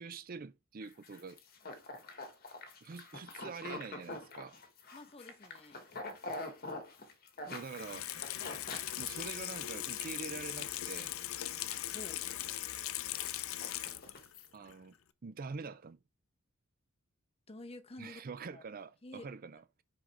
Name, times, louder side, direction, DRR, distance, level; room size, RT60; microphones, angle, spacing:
voice 1, 0.0-1.4 2.8-4.6 7.5-8.1 9.0-11.1 14.5-15.0 15.2-16.0 18.0-19.8, right 4 dB, 40° right, 0.4 m, -45 dB
sound 1, 0.8-9.7 10.1-10.3 10.6-11.1 11.5-12.4 12.8-14.5, left 2 dB, 45° left, 1.5 m, -46 dB
voice 2, 4.9-5.8 11.9-12.3 17.5-18.2 18.5-18.6 19.0-19.3, left 2 dB, 25° left, 0.8 m, -49 dB
Water tap faucet / Sink (filling or washing), 7.6-14.3 14.7-14.8, left 13 dB, 65° left, 0.6 m, -40 dB
6.2 x 5.2 x 3.4 m
head